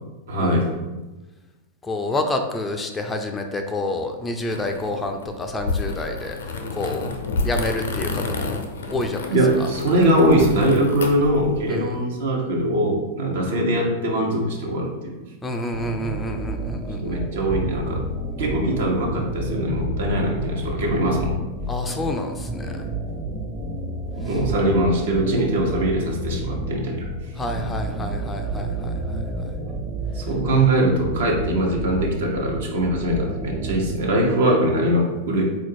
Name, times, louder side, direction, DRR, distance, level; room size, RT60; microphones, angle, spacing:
voice 1, 0.3-0.7 9.3-15.1 17.0-18.0 18.4-21.4 24.1-27.1 30.1-35.5, right 1 dB, 65° right, -1 dB, 1.0 m, -21 dB
voice 2, 1.8-6.4 6.7-7.1 7.5-8.6 8.9-9.3 11.7-12.0 15.4-17.2 21.7-22.8 27.4-28.9, left 2 dB, 15° left, 5 dB, 0.4 m, -28 dB
sound 1, 4.5-11.7, left 3 dB, 70° left, 0.5 m, -30 dB
sound 2, 15.7-34.2, right 1 dB, 15° right, 0.7 m, -30 dB
4.0 x 2.4 x 4.5 m, 1.1 s
figure-of-eight pair, 95°, 0 cm